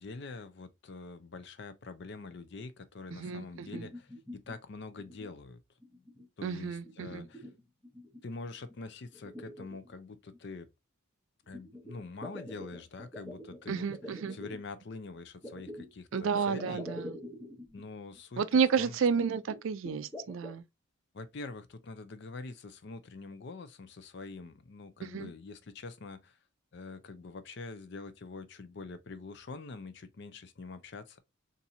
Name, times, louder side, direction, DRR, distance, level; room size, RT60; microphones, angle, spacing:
voice 1, 0.0-5.6 6.4-7.4 8.2-10.7 11.5-13.9 14.3-16.8 17.7-18.4 18.8-19.0 21.1-26.4 26.7-31.2, left 3 dB, 50° left, 0.5 m, -45 dB
voice 2, 3.1-3.9 6.4-7.3 13.7-14.4 16.1-17.2 18.4-20.6 25.0-25.3, right 6 dB, 65° right, 0.4 m, -31 dB
sound 1, 3.4-4.6 5.0-5.4 5.8-6.3 6.6-8.2 8.7-8.8 9.1-10.4 11.5-14.6 15.4-17.8 18.2-18.3 18.5-18.6 19.2-20.6, left 1 dB, 5° left, 0.8 m, -46 dB
4.1 x 2.6 x 2.6 m
head